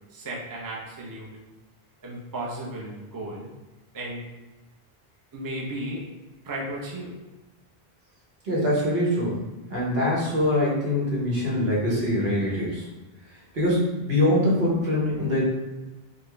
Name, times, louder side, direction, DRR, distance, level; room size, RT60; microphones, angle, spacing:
voice 1, 0.1-1.3 2.0-3.5 3.9-4.2 5.3-6.0 6.4-7.1, right 1 dB, 25° right, -4 dB, 0.5 m, -34 dB
voice 2, 8.4-12.9 13.5-15.4, left 1 dB, 70° right, -5 dB, 1.3 m, -24 dB
4.0 x 2.1 x 3.3 m, 1.1 s
omnidirectional pair, 1.0 m